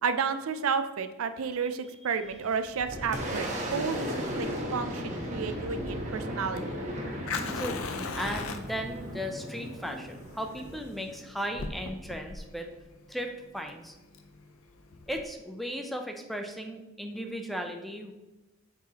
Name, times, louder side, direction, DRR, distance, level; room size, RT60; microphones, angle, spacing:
voice 1, 0.0-6.6, right 6 dB, 90° right, 10 dB, 0.5 m, -31 dB
Boom, 2.2-11.7, equal, 35° right, 1.2 m, -36 dB
Fire, 4.2-15.2, left 4 dB, 85° left, 0.6 m, -40 dB
voice 2, 7.5-12.7 13.1-14.0 15.1-18.1, equal, ahead, 4 dB, 0.5 m, -36 dB
7.6 x 4.7 x 2.9 m, 1.1 s
head